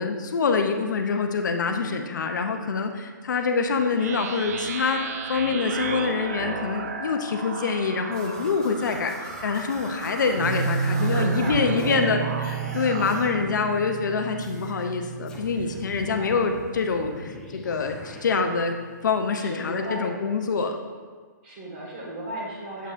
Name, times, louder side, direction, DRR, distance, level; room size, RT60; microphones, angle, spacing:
voice 1, 0.0-5.0 5.3-12.2 12.5-18.8 19.0-20.8, left 5 dB, 65° left, 5 dB, 0.6 m, -25 dB
sound 1, 4.0-13.5, right 5 dB, 50° right, 0.5 m, -35 dB
sound 2, 8.1-12.1 12.4-13.3 14.4-14.8 15.3-18.2, left 2 dB, 5° left, 0.5 m, -45 dB
sound 3, 10.4-17.2 17.5-18.1 18.4-18.5, right 5 dB, 75° right, 0.8 m, -31 dB
voice 2, 10.9-12.3 15.6-16.4 19.4-20.1 20.6-20.7 21.4-22.9, right 1 dB, 30° right, -4 dB, 1.7 m, -36 dB
7.5 x 5.3 x 2.5 m, 1.5 s
hypercardioid pair, 165°, 11 cm